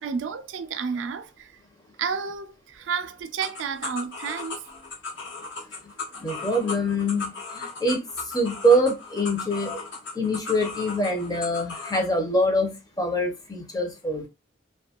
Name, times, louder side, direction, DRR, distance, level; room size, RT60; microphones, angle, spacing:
voice 1, 0.0-1.5 2.0-4.6, right 6 dB, 85° right, 0.3 m, -31 dB
sound 1, 3.4-12.1, left 3 dB, 75° left, 0.9 m, -36 dB
voice 2, 6.2-8.0 8.3-9.9 10.2-14.3, equal, 20° left, 0.5 m, -24 dB
2.5 x 2.2 x 2.8 m
head